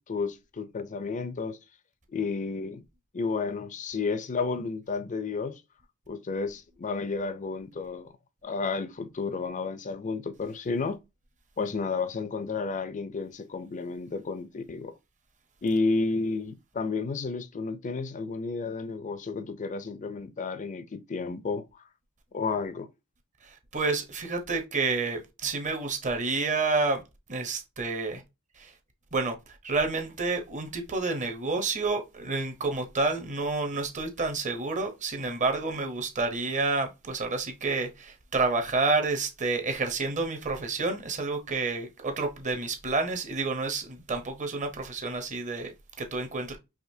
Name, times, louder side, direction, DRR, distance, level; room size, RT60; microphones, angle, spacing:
voice 1, 0.1-1.6 2.1-2.8 3.1-5.6 6.1-8.1 8.4-11.0 11.6-14.9 15.6-21.7 22.3-22.9, left 4 dB, 35° left, 0.5 m, -31 dB
voice 2, 23.4-27.0 27.3-28.2 28.6-28.7 29.1-29.3 29.6-46.6, right 3 dB, 35° right, 0.8 m, -29 dB
4.9 x 2.9 x 2.7 m
head